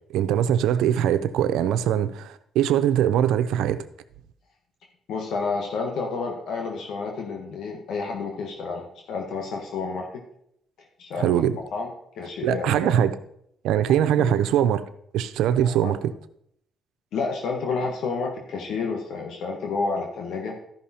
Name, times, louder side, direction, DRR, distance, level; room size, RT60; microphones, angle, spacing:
voice 1, 0.1-3.8 11.2-11.6 12.4-13.2 13.6-14.8 15.1-16.1, right 10 dB, 90° right, 0.6 m, -22 dB
voice 2, 5.1-10.2 11.0-11.3 11.7-11.9 12.2-13.0 14.2-14.4 15.6-15.9 17.1-20.5, left 4 dB, 75° left, 1.5 m, -30 dB
13.0 x 5.6 x 4.3 m
cardioid pair, 90°, 0 cm